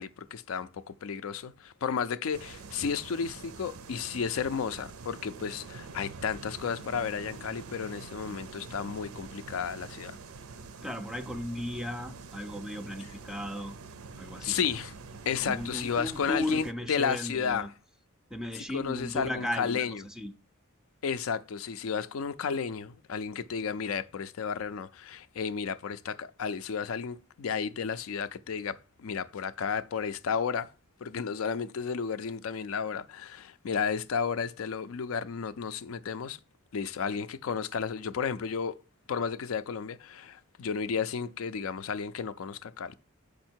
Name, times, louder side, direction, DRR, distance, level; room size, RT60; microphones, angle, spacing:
voice 1, 0.0-10.2 14.4-14.9 15.3-17.7 18.5-20.0 21.0-30.7 31.0-36.4 36.7-38.8 39.1-42.9, left 6 dB, 70° left, 0.4 m, -33 dB
sound 1, 2.3-16.7, right 4 dB, 80° right, 0.6 m, -46 dB
voice 2, 10.8-13.7 14.2-14.8 15.4-17.7 18.3-20.3, left 1 dB, 5° right, 0.4 m, -36 dB
6.4 x 5.1 x 4.4 m
head